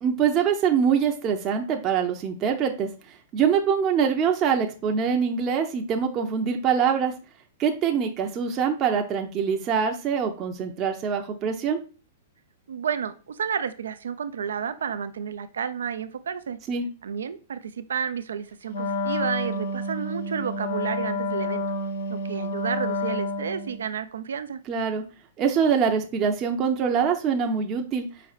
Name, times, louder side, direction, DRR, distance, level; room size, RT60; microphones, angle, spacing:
voice 1, 0.0-2.9 3.3-7.1 7.6-11.8 16.7-16.9 24.7-25.0 25.4-28.0, right 7 dB, 35° right, 3 dB, 0.6 m, -24 dB
voice 2, 12.7-16.6 17.0-21.6 22.1-24.6, right 7 dB, 85° right, 12 dB, 0.4 m, -31 dB
Wind instrument woodwind instrument, 18.7-23.8, left 1 dB, 80° left, 0.9 m, -29 dB
4.8 x 4.2 x 2.4 m, 0.35 s
hypercardioid pair, 125°, 0 cm